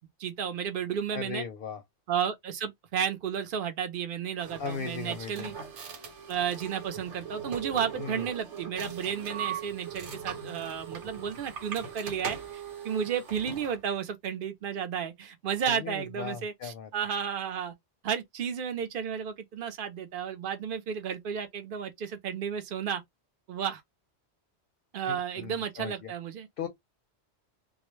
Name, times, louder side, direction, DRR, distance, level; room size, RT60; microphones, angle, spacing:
voice 1, 0.2-1.4 2.1-5.6 6.3-17.7 18.0-23.0 23.5-23.8 24.9-26.5, right 8 dB, 60° right, 0.6 m, -33 dB
voice 2, 1.1-1.8 4.6-5.5 8.0-8.2 15.7-16.9 25.1-26.1 26.6-26.7, left 6 dB, 60° left, 0.7 m, -37 dB
sound 1, 4.4-13.8, right 7 dB, 90° right, 1.1 m, -40 dB
2.3 x 2.0 x 3.0 m
omnidirectional pair, 1.2 m